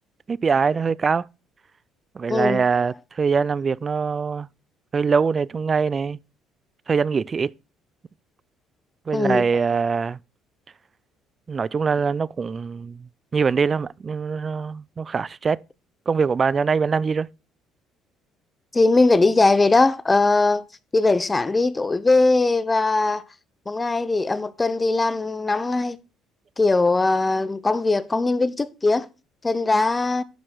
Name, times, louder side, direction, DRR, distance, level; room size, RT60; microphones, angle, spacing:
voice 1, 0.3-1.3 2.1-4.5 4.9-6.2 6.9-7.5 9.1-10.2 11.5-15.6 16.1-17.3, right 5 dB, 30° right, 0.4 m, -23 dB
voice 2, 2.3-2.6 9.1-9.5 18.7-20.6 20.9-23.2 23.7-26.0 26.6-29.1 29.4-30.2, left 3 dB, 20° left, 0.8 m, -20 dB
11.5 x 5.1 x 6.0 m
cardioid pair, 110°, 0 cm